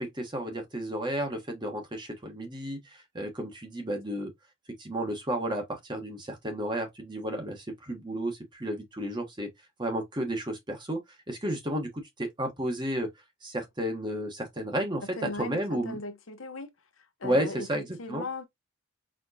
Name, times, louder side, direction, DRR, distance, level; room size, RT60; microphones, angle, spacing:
voice 1, 0.0-4.3 4.8-9.5 9.8-11.0 11.3-13.1 13.4-16.0 17.2-18.3, right 1 dB, 20° right, 1.2 m, -32 dB
voice 2, 15.2-16.7 17.2-18.5, left 3 dB, 75° left, 1.0 m, -38 dB
4.3 x 3.7 x 2.8 m
head